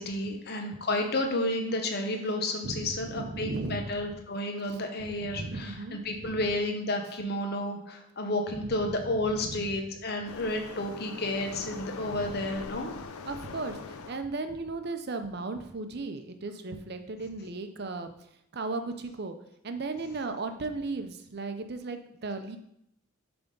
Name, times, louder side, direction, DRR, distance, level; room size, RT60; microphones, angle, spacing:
voice 1, 0.0-13.0, left 1 dB, 45° left, 3 dB, 0.8 m, -31 dB
voice 2, 2.6-4.1 4.7-6.4 8.5-9.7 12.0-12.5 13.2-18.1 18.5-19.4 19.6-22.6, right 3 dB, 50° right, 8 dB, 0.6 m, -36 dB
Waves surf, 10.2-14.2, left 4 dB, 85° left, 0.5 m, -42 dB
7.0 x 3.5 x 5.3 m, 0.76 s
head